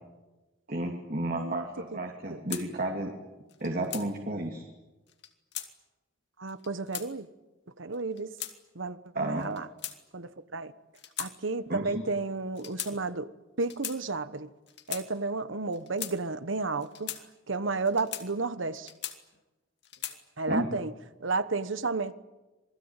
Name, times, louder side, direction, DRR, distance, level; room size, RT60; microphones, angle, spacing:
voice 1, 0.7-3.1 3.6-4.6 9.1-9.4 11.7-11.9 20.5-20.7, right 1 dB, 45° right, 1 dB, 2.7 m, -32 dB
voice 2, 1.3-1.6 1.9-2.0 2.3-2.4 6.4-7.3 7.8-8.3 8.7-9.7 10.1-10.7 11.2-13.3 13.6-14.5 14.9-17.1 17.5-18.9 20.4-20.9 21.2-22.1, right 3 dB, 70° right, 13 dB, 1.1 m, -32 dB
sound 1, 2.5-2.6 3.5-4.1 5.1-5.7 6.5-7.1 7.9-8.5 9.4-10.3 10.9-11.3 11.6-11.8 12.5-12.9 13.6-14.0 14.7-15.0 15.7-16.1 16.8-17.2 17.8-18.3 18.7-19.4 19.8-20.2, left 12 dB, 55° left, 2.5 m, -38 dB
27.5 x 20.5 x 9.0 m, 1.1 s
head